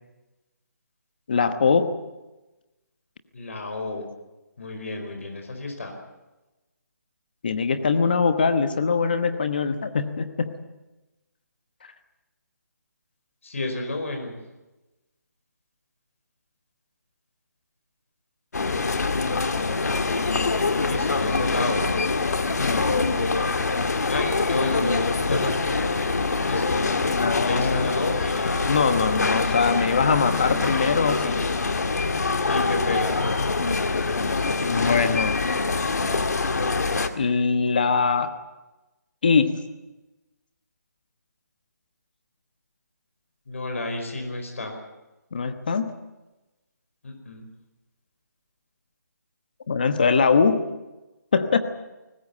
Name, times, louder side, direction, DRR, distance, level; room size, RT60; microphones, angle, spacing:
voice 1, 1.3-1.9 7.4-10.5 22.6-22.8 27.1-27.9 28.7-31.5 34.6-35.4 37.2-38.3 39.2-39.6 45.3-45.9 49.7-50.6 51.3-51.6, left 5 dB, 30° left, 10 dB, 1.2 m, -22 dB
voice 2, 3.3-4.1 4.6-5.9 13.4-14.4 20.8-21.9 24.1-26.0 26.5-27.0 27.4-28.7 32.5-33.5 43.5-44.7 47.0-47.5, left 2 dB, 45° left, 3 dB, 5.0 m, -31 dB
sound 1, 18.5-37.1, left 3 dB, 65° left, 1.8 m, -24 dB
22.0 x 19.5 x 8.4 m, 1.1 s
hypercardioid pair, 175°, 10 cm